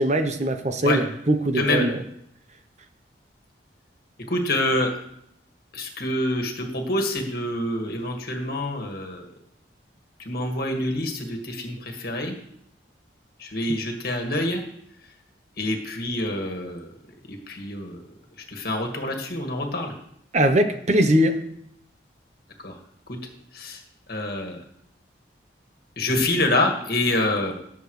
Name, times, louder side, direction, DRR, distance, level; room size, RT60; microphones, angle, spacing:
voice 1, 0.0-2.0 20.3-21.4, right 1 dB, 40° right, 7 dB, 0.8 m, -21 dB
voice 2, 4.3-4.9 5.7-9.3 10.3-12.3 13.4-14.6 15.6-16.9 17.3-18.0 18.5-19.9 22.6-22.7 23.5-23.8 24.1-24.6 26.0-27.5, left 1 dB, 55° left, 2 dB, 1.9 m, -26 dB
18.0 x 7.1 x 3.2 m, 0.72 s
head